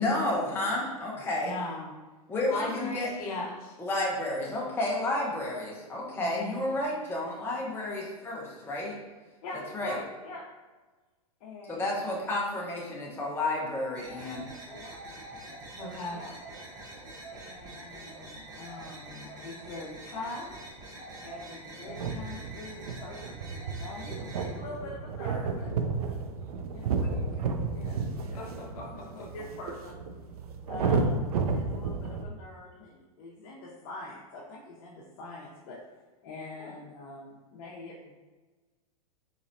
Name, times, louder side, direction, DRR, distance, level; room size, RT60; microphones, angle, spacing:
voice 1, 0.0-1.5 2.3-3.1 3.8-8.9 9.7-10.0 11.7-14.5, left 2 dB, 10° left, -4 dB, 0.8 m, -31 dB
voice 2, 1.4-1.9 2.5-3.7 6.1-6.7 15.8-16.2 28.3-28.7, left 2 dB, 70° left, -3 dB, 1.2 m, -36 dB
voice 3, 9.4-10.4 11.4-12.0 14.7-15.0 15.5-15.6 16.1-16.4 17.3-20.5 21.1-23.4 23.7-26.2 26.7-28.4 28.7-30.0 30.7-35.8 36.2-38.1, left 2 dB, 50° left, -6 dB, 0.8 m, -44 dB
sound 1, 13.9-24.6, right 2 dB, 20° right, 0.9 m, -45 dB
sound 2, 21.9-32.3, right 4 dB, 80° right, 0.4 m, -32 dB
4.0 x 3.0 x 2.6 m, 1.3 s
hypercardioid pair, 115°, 19 cm